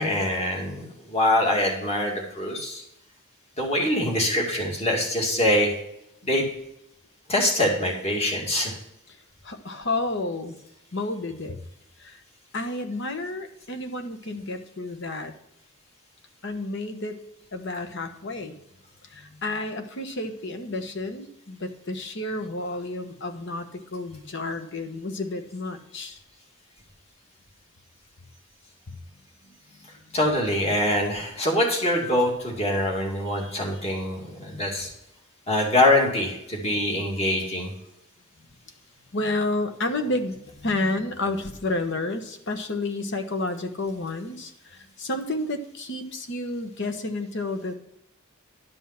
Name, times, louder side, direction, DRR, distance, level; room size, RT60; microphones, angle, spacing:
voice 1, 0.0-2.8 3.6-5.8 6.2-6.4 7.3-8.8 30.1-34.9 35.5-37.7, left 1 dB, 30° left, -1 dB, 2.2 m, -24 dB
voice 2, 9.4-10.6 10.9-11.6 12.0-12.2 12.5-15.3 16.4-17.2 17.5-18.6 19.0-26.2 28.9-29.0 29.5-29.6 30.0-30.2 33.3-33.6 39.1-47.7, left 2 dB, 55° left, 7 dB, 1.1 m, -31 dB
11.5 x 5.5 x 5.7 m, 0.82 s
head